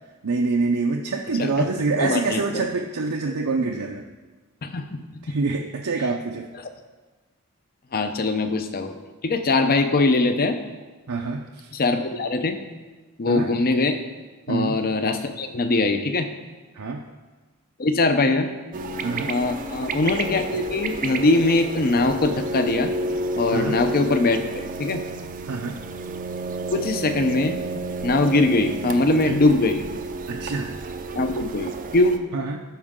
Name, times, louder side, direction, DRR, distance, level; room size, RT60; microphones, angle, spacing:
voice 1, 0.2-4.1 5.2-6.5 11.1-11.7 13.3-13.5 14.5-14.8 16.8-17.0 19.0-19.3 23.5-23.8 25.5-25.8 29.3-29.4 30.3-30.7 32.3-32.6, right 3 dB, 80° right, 1 dB, 0.6 m, -26 dB
voice 2, 1.4-1.7 2.0-2.6 4.6-5.4 6.6-6.7 7.9-8.9 9.2-10.6 11.7-12.6 13.2-14.0 14.5-16.3 17.8-18.5 19.3-22.9 23.4-25.0 26.7-27.6 28.0-29.8 31.1-32.2, left 2 dB, 45° left, 7 dB, 0.6 m, -22 dB
sound 1, 18.7-32.2, right 2 dB, 40° right, 0.5 m, -31 dB
13.5 x 4.9 x 3.7 m, 1.3 s
head